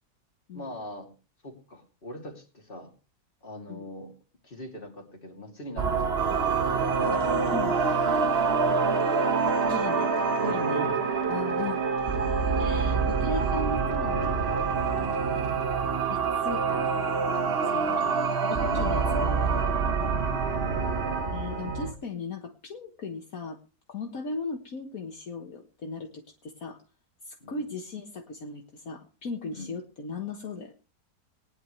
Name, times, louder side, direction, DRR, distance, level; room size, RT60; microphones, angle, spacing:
voice 1, 0.5-1.1 1.4-2.9 3.4-4.2 4.4-8.0 10.4-11.0 11.6-11.9 14.8-15.3 17.4-18.1 18.6-18.9 27.4-27.6 29.5-29.7, left 1 dB, 30° left, 1 dB, 3.2 m, -42 dB
sound 1, 5.8-21.9, right 4 dB, 40° right, 1.4 m, -28 dB
sound 2, 6.2-21.2, right 6 dB, 85° right, 1.8 m, -30 dB
voice 2, 9.6-10.1 10.4-10.9 11.3-11.8 12.6-14.6 15.7-18.2 18.5-19.8 21.3-23.6 23.9-26.8 27.2-30.7, left 3 dB, 55° left, 3 dB, 1.9 m, -37 dB
19.5 x 10.5 x 3.3 m, 0.33 s
omnidirectional pair, 1.8 m